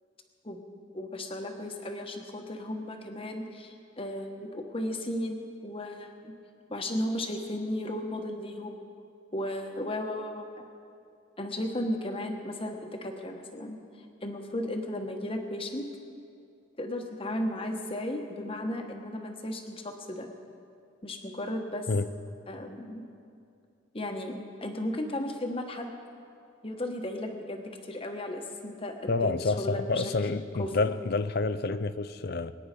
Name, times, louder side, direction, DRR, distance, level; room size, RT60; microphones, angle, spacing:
voice 1, 0.9-6.3 6.7-8.8 9.3-10.4 11.4-13.8 14.2-15.8 16.8-20.3 21.0-21.9 22.5-23.1 23.9-25.9 26.6-29.8 30.6-30.7, left 1 dB, 30° left, 1.2 m, -35 dB
voice 2, 29.1-32.5, left 3 dB, 55° left, 0.5 m, -28 dB
22.5 x 9.7 x 5.2 m
head